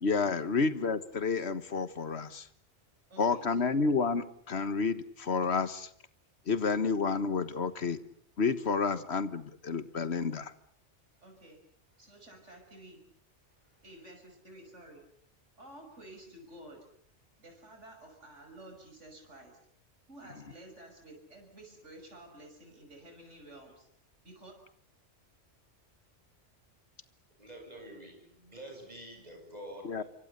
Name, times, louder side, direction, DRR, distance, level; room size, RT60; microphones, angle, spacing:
voice 1, 0.0-2.5 3.2-5.9 6.5-8.0 8.4-10.5 29.8-30.0, left 4 dB, 65° left, 13 dB, 1.7 m, -30 dB
voice 2, 3.1-3.8 11.2-11.6 12.0-13.0 13.8-15.0 15.6-16.9 17.4-19.6 20.1-23.9 24.2-24.5, right 1 dB, 80° right, 3 dB, 6.4 m, -52 dB
voice 3, 27.4-30.1, right 1 dB, 35° right, 2 dB, 7.6 m, -47 dB
27.5 x 24.5 x 6.8 m, 0.62 s
omnidirectional pair, 1.2 m